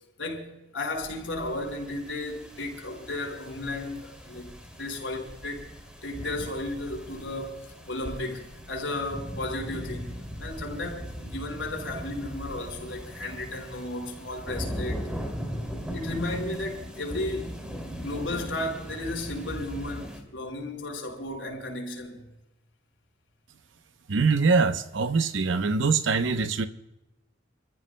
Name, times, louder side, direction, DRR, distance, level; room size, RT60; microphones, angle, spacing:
voice 1, 0.2-5.7 6.0-15.1 15.9-17.6 18.0-22.3, left 2 dB, 80° left, 4.9 m, -34 dB
sound 1, 0.9-20.2, equal, 5° right, 2.6 m, -39 dB
voice 2, 24.1-26.7, right 4 dB, 80° right, 0.8 m, -23 dB
30.0 x 14.5 x 2.2 m
head